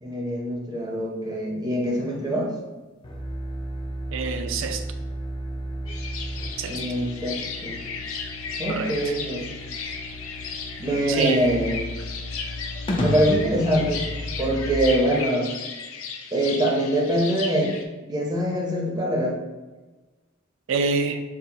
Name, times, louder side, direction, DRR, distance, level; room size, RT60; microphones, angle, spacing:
voice 1, 0.0-2.5 6.7-7.3 7.6-7.8 8.6-9.4 10.8-11.8 13.0-14.1 14.4-15.5 16.3-17.7 18.1-19.3, right 1 dB, 20° right, -2 dB, 0.6 m, -24 dB
sound 1, 3.0-14.7, equal, 25° left, 0.4 m, -33 dB
voice 2, 4.1-4.9 6.6-6.8 8.7-9.1 11.1-11.5 20.7-21.2, right 4 dB, 65° right, 7 dB, 0.4 m, -26 dB
sound 2, 5.9-17.8, left 5 dB, 90° left, 0.5 m, -35 dB
4.5 x 2.0 x 3.9 m, 1.2 s
head